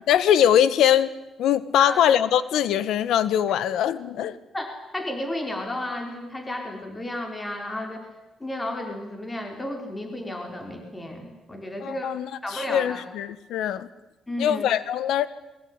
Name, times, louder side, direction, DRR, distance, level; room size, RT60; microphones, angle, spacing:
voice 1, 0.1-1.1 1.4-4.4 11.8-13.9 14.4-15.3, left 10 dB, 80° left, 16 dB, 1.5 m, -22 dB
voice 2, 4.5-8.1 8.4-12.1 12.4-13.0 14.3-14.7, left 1 dB, 15° left, 4 dB, 4.5 m, -33 dB
22.5 x 22.0 x 9.8 m, 1.0 s
cardioid pair, 90°, 0 cm